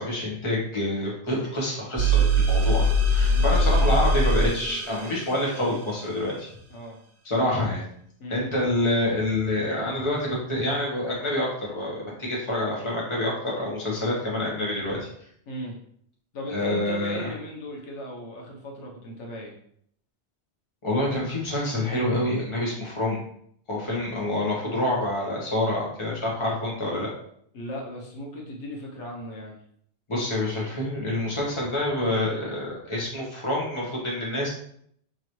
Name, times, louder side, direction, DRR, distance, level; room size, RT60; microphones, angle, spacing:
voice 1, 0.0-6.5 7.2-7.8 8.3-15.1 16.5-17.3 20.8-23.2 23.7-27.1 30.1-34.5, left 1 dB, 30° left, -4 dB, 1.1 m, -27 dB
sound 1, 2.0-5.5, right 1 dB, 60° right, 0.7 m, -21 dB
voice 2, 3.3-4.2 4.7-4.8 6.7-7.0 8.2-8.5 15.5-15.7 16.3-19.6 27.5-29.6, left 1 dB, 85° left, -1 dB, 1.2 m, -37 dB
3.8 x 3.0 x 3.0 m, 0.67 s
omnidirectional pair, 1.2 m